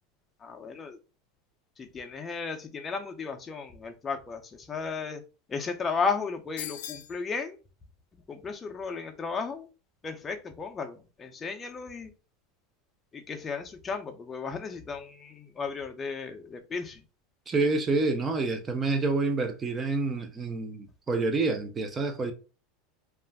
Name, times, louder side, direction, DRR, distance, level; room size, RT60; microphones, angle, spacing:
voice 1, 0.4-1.0 1.8-4.4 4.7-5.2 5.5-7.6 8.3-9.7 10.0-12.1 13.1-17.0, left 5 dB, 20° left, 0.5 m, -34 dB
sound 1, 6.6-7.2, left 11 dB, 80° left, 0.3 m, -39 dB
voice 2, 17.5-22.3, right 3 dB, 25° right, 0.5 m, -28 dB
2.4 x 2.1 x 3.4 m
supercardioid pair, 125°, 0 cm